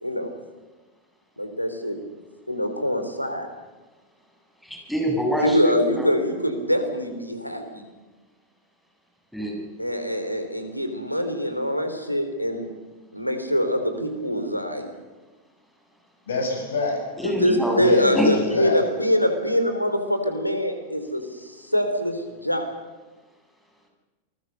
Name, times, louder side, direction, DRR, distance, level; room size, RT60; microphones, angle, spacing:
voice 1, 1.4-2.0 2.5-3.5 5.4-7.8 9.8-12.7 13.1-14.9 17.2-22.7, equal, 90° left, 7 dB, 3.5 m, -24 dB
voice 2, 4.6-6.1 9.3-9.6 17.2-17.8 18.1-18.4, equal, ahead, 0 dB, 7.5 m, -25 dB
voice 3, 16.3-17.0 17.7-18.9, left 3 dB, 65° left, 3 dB, 6.5 m, -26 dB
27.5 x 20.5 x 6.8 m, 1.3 s
figure-of-eight pair, 90°, 0 cm